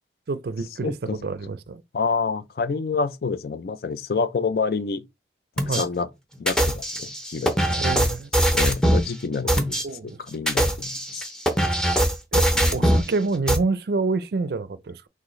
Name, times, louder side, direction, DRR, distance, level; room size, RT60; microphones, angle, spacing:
voice 1, 0.3-1.0 1.2-1.8 5.7-5.9 7.7-8.3 9.8-10.2 12.3-15.1, right 3 dB, 65° right, 0.4 m, -27 dB
voice 2, 0.8-1.3 1.9-5.0 5.7-6.1 6.4-7.8 8.5-9.8 10.3-11.2 12.5-13.0, left 4 dB, 60° left, 0.4 m, -28 dB
sound 1, 5.6-5.8 6.5-9.1 9.5-9.8 10.3-13.1 13.5-13.6, right 1 dB, 5° left, 0.6 m, -21 dB
6.2 x 2.4 x 3.1 m
head